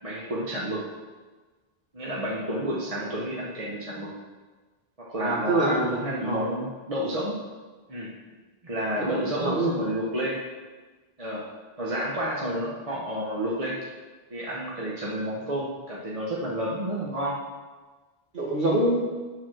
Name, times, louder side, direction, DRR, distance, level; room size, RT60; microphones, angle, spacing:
voice 1, 0.0-0.9 1.9-4.1 5.0-7.3 7.9-8.1 8.6-10.4 11.2-11.5 11.8-13.9 14.3-17.4, right 1 dB, 35° right, -5 dB, 1.2 m, -30 dB
voice 2, 5.2-6.4 9.0-9.1 9.4-9.7 18.3-19.0, right 1 dB, 50° right, -3 dB, 2.0 m, -25 dB
9.1 x 4.2 x 6.2 m, 1.3 s
omnidirectional pair, 1.1 m